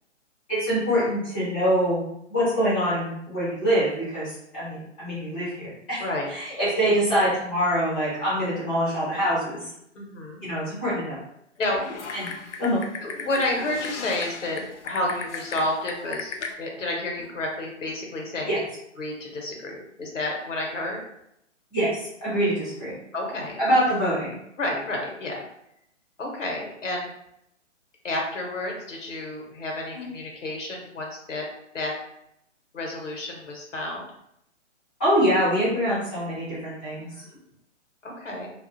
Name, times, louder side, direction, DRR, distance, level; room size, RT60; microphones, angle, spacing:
voice 1, 0.5-2.0 2.3-6.0 6.3-9.7 10.4-11.1 12.1-12.3 12.6-12.8 18.5-18.6 21.7-22.9 23.6-24.4 29.9-30.1 35.0-37.1, equal, 10° left, -11 dB, 0.4 m, -24 dB
voice 2, 6.0-6.6 9.9-10.4 11.6-11.8 13.0-18.5 19.0-21.0 23.1-23.8 24.6-25.4 26.2-27.1 28.0-31.4 31.7-31.9 32.7-34.1 36.9-37.4 38.0-38.5, left 1 dB, 80° left, 0 dB, 0.9 m, -30 dB
Typing, 11.8-16.5, left 5 dB, 65° left, 0.5 m, -36 dB
2.4 x 2.4 x 2.6 m, 0.78 s
figure-of-eight pair, 135°, 37 cm